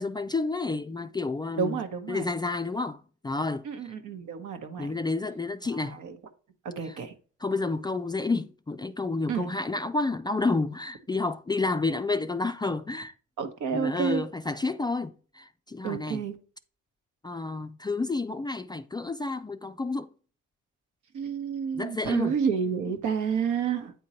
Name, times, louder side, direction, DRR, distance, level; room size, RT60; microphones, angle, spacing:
voice 1, 0.0-1.8 2.1-3.9 4.8-6.0 6.8-7.0 7.4-13.1 13.7-16.2 17.2-20.1 21.7-22.4, left 3 dB, 15° left, 0.3 m, -30 dB
voice 2, 1.6-2.3 3.6-5.0 6.0-6.1 6.6-7.1 9.3-9.5 13.4-14.2 15.8-16.3 21.1-23.9, right 6 dB, 75° right, 1.1 m, -30 dB
8.6 x 3.7 x 4.2 m
cardioid pair, 90°, 30 cm